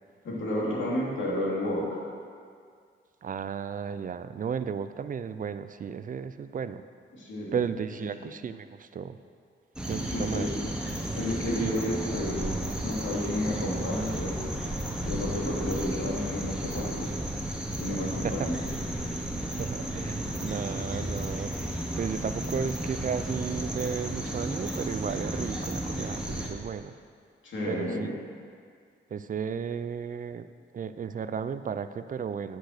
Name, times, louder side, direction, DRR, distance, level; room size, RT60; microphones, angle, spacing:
voice 1, 0.2-2.0 7.1-7.6 8.0-8.1 10.0-10.5 11.1-14.3 15.0-17.1 17.8-18.6 27.4-28.1, left 1 dB, 80° left, -4 dB, 2.7 m, -31 dB
voice 2, 3.2-6.8 7.5-9.2 9.9-10.5 11.6-11.7 18.2-18.5 19.6-26.9 27.7-28.1 29.1-30.5 30.7-32.6, right 7 dB, 45° right, 12 dB, 0.4 m, -34 dB
sound 1, 9.8-26.5, right 1 dB, 5° right, 1.3 m, -33 dB
10.5 x 6.1 x 6.6 m, 2.1 s
wide cardioid pair, 120°, 20 cm